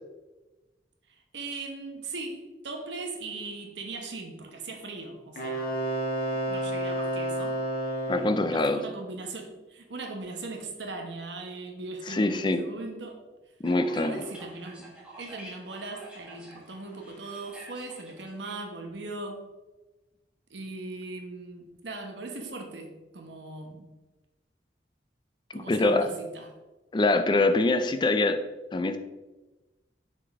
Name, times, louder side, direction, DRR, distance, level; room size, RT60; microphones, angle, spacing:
voice 1, 1.1-5.7 6.5-7.6 8.5-13.2 13.9-19.5 20.5-23.9 25.5-26.5, right 3 dB, 80° right, 3 dB, 1.1 m, -39 dB
Wind instrument woodwind instrument, 5.4-8.5, right 1 dB, 55° left, 1.4 m, -30 dB
voice 2, 8.1-8.8 12.1-12.6 13.6-14.2 25.5-26.1 26.9-28.4 28.7-29.0, left 2 dB, 25° left, 9 dB, 0.4 m, -24 dB
sound 1, 13.7-18.5, right 1 dB, 5° right, 1.4 m, -49 dB
5.9 x 3.9 x 4.7 m, 1.1 s
head